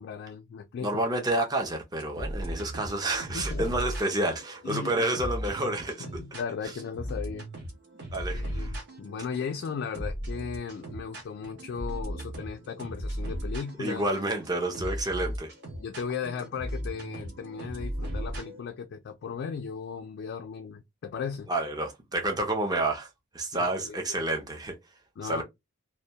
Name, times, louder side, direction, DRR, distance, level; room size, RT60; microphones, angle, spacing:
voice 1, 0.0-1.0 3.3-3.7 4.6-4.9 6.0-7.5 8.3-14.0 15.8-21.5 23.5-24.2 25.2-25.4, left 6 dB, 60° left, 0.3 m, -36 dB
voice 2, 0.8-6.1 8.1-8.7 13.8-15.5 21.5-23.1 23.3-24.7 25.2-25.4, right 2 dB, 20° right, 0.5 m, -29 dB
sound 1, 2.0-18.6, equal, 55° right, 0.7 m, -37 dB
2.1 x 2.1 x 2.7 m
head